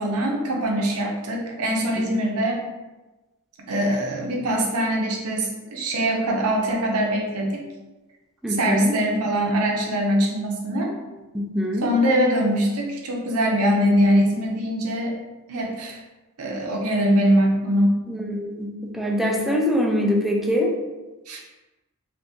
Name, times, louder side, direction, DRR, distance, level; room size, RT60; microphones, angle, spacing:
voice 1, 0.0-2.6 3.7-7.6 8.6-10.9 11.8-15.1 15.5-16.0 16.4-18.0 21.3-21.4, equal, 75° right, 0 dB, 0.6 m, -22 dB
voice 2, 8.4-9.0 11.3-11.9 13.7-14.1 18.1-20.7, equal, ahead, -2 dB, 0.4 m, -24 dB
2.7 x 2.5 x 3.6 m, 1.1 s
head